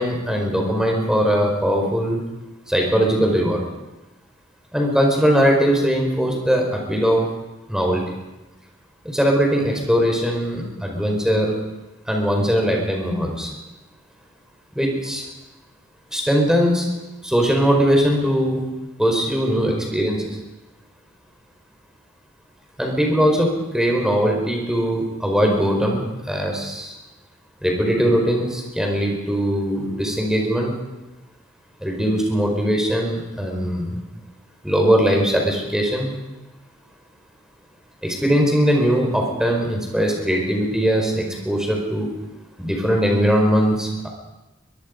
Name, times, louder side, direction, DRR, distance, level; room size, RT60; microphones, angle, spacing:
voice 1, 0.0-2.2 2.7-3.6 4.7-7.3 7.7-8.0 9.0-11.5 12.1-13.5 14.7-15.2 16.1-16.9 17.2-18.6 19.0-20.4 22.8-26.9 27.6-30.7 31.8-34.0 34.6-36.1 38.0-42.1 42.6-44.1, equal, 5° right, 0 dB, 4.8 m, -20 dB
22.5 x 22.0 x 5.3 m, 1.0 s
head